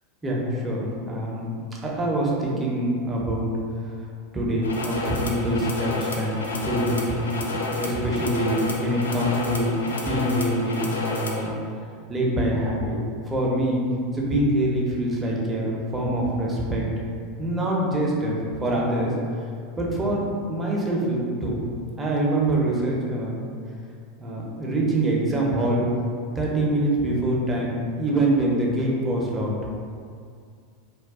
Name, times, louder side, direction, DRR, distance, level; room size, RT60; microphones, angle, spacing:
voice 1, 0.2-1.4 1.8-3.5 4.3-9.8 10.1-11.5 12.1-13.0 13.3-13.8 14.1-17.1 17.4-19.1 19.8-21.6 22.0-23.4 24.2-25.9 26.4-29.5, right 1 dB, 20° right, -4 dB, 0.7 m, -25 dB
sound 1, 4.6-11.5, left 3 dB, 80° left, 0.3 m, -31 dB
2.3 x 2.2 x 3.5 m, 2.2 s
hypercardioid pair, 85°, 0 cm